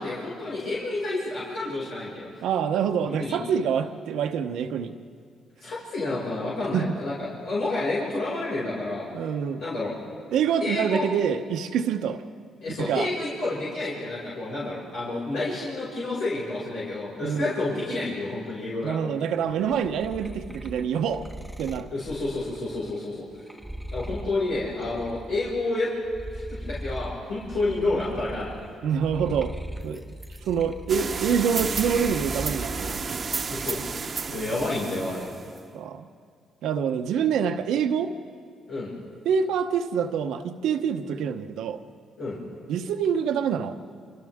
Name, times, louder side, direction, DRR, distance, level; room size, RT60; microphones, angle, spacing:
voice 1, 0.0-2.3 3.1-3.4 5.6-9.1 9.6-9.9 10.6-11.1 12.6-19.0 21.9-23.3 23.9-25.9 26.3-28.7 33.5-34.0 34.3-35.2 38.7-38.9 42.2-42.4, left 2 dB, 80° left, -8 dB, 6.1 m, -29 dB
voice 2, 2.4-5.0 6.7-6.9 9.1-9.6 10.3-12.2 12.8-13.1 17.2-17.5 18.8-21.2 21.6-21.9 28.8-29.5 29.8-30.0 30.4-33.0 35.7-36.0 36.6-38.1 39.2-41.8 42.7-43.8, right 7 dB, 85° right, 7 dB, 1.0 m, -26 dB
sound 1, 19.6-25.7 26.0-33.1 33.5-34.1, right 1 dB, ahead, 1.7 m, -39 dB
sound 2, 30.9-35.6, right 5 dB, 40° right, 1.0 m, -32 dB
28.5 x 25.5 x 3.7 m, 2.2 s
cardioid pair, 90°, 0 cm